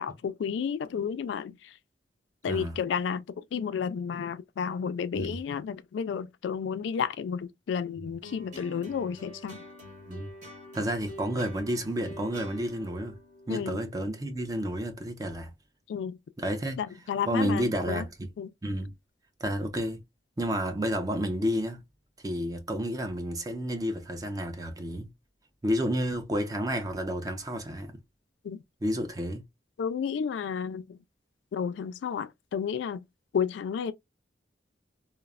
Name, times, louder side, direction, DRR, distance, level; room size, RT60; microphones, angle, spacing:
voice 1, 0.0-1.6 2.4-3.2 3.5-9.6 13.5-13.7 15.9-16.2 16.8-18.0 18.4-18.5 28.4-28.6 29.8-31.0 31.5-33.0 33.3-33.9, left 7 dB, 80° left, 0.3 m, -31 dB
voice 2, 2.5-2.8 5.1-5.4 10.1-10.3 10.7-13.2 13.5-15.5 16.4-16.8 17.3-18.3 18.6-18.9 19.4-20.0 20.4-21.8 22.2-25.1 25.6-27.9 28.8-29.4, equal, 20° right, 0.5 m, -30 dB
sound 1, 8.2-14.7, left 1 dB, 45° right, 1.6 m, -47 dB
3.0 x 2.0 x 2.3 m
head